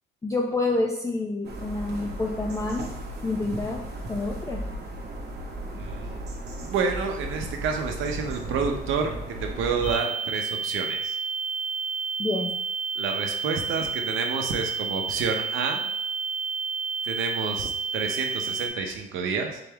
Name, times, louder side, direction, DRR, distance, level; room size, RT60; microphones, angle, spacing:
voice 1, 0.2-2.9 3.2-4.6 12.2-12.6, left 2 dB, 15° left, 0 dB, 0.4 m, -28 dB
sound 1, 1.4-9.9, right 1 dB, 55° right, 0.9 m, -36 dB
voice 2, 5.7-6.2 6.6-11.2 13.0-15.9 17.0-19.6, right 5 dB, 90° right, 4 dB, 0.7 m, -29 dB
sound 2, 9.8-18.7, right 5 dB, 85° left, 1.0 m, -30 dB
3.8 x 3.5 x 3.4 m, 0.87 s
cardioid pair, 90°, 20 cm